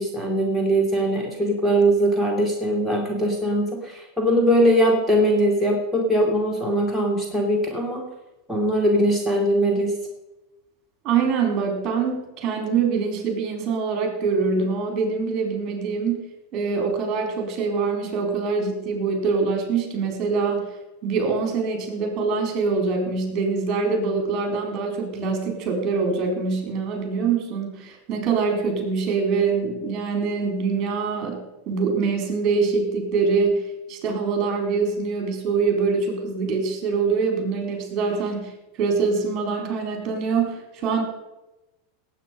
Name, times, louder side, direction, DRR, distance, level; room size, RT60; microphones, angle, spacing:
voice 1, 0.0-8.1 8.5-9.9, right 1 dB, ahead, -2 dB, 2.6 m, -21 dB
voice 2, 11.0-16.3 16.5-20.7 21.0-33.6 33.9-41.0, right 5 dB, 40° right, 3 dB, 4.3 m, -24 dB
18.0 x 8.5 x 5.1 m, 0.98 s
hypercardioid pair, 95°, 0 cm